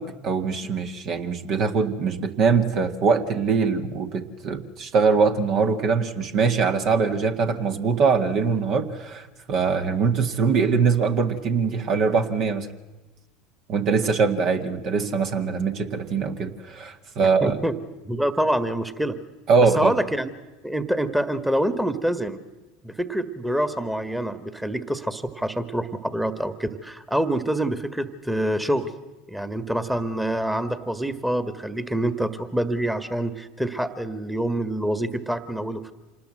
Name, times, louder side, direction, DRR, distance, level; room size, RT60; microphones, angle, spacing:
voice 1, 0.0-12.7 13.7-17.6 19.5-19.9, right 5 dB, 50° right, 6 dB, 1.9 m, -22 dB
voice 2, 17.4-17.8 18.0-19.2 19.6-20.3 20.6-22.4 22.8-28.9 29.3-35.8, right 1 dB, 5° right, 10 dB, 1.7 m, -26 dB
26.5 x 19.5 x 7.8 m, 1.2 s
hypercardioid pair, 75°, 0 cm